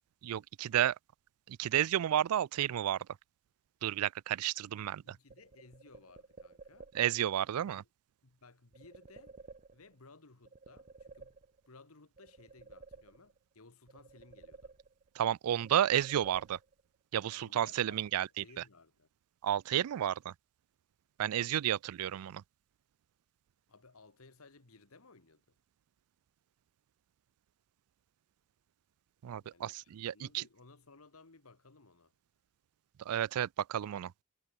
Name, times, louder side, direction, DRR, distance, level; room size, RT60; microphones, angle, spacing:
voice 1, 0.2-1.0 1.5-3.1 3.8-5.2 6.9-7.8 15.1-16.6 17.1-18.4 19.4-20.3 21.2-22.4 29.2-30.4 33.0-34.1, right 11 dB, 85° right, 0.4 m, -32 dB
voice 2, 5.0-6.9 7.8-7.9 8.2-9.4 9.7-11.4 11.7-14.7 17.3-19.1 23.7-25.6 29.4-32.1, left 3 dB, 75° left, 1.7 m, -59 dB
sound 1, 5.3-7.3 8.7-10.1 10.4-11.8 12.2-13.5 13.9-15.2 15.6-17.0, right 4 dB, 35° right, 0.9 m, -55 dB
head